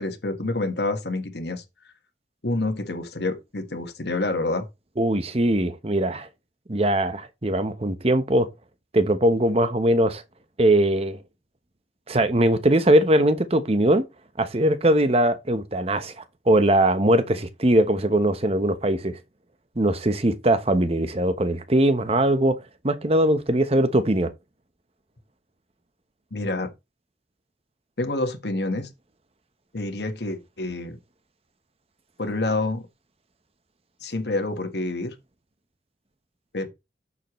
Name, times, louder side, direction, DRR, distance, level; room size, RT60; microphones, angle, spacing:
voice 1, 0.0-1.6 2.4-4.7 26.3-26.7 28.0-28.9 29.7-31.0 32.2-32.8 34.0-35.1 36.5-36.7, left 2 dB, 65° left, 1.5 m, -27 dB
voice 2, 5.0-6.3 6.7-8.5 8.9-10.2 10.6-11.2 12.1-14.0 14.4-16.1 16.5-19.2 19.8-22.5 22.8-24.3, right 1 dB, 35° right, 1.0 m, -21 dB
9.7 x 6.9 x 3.1 m
head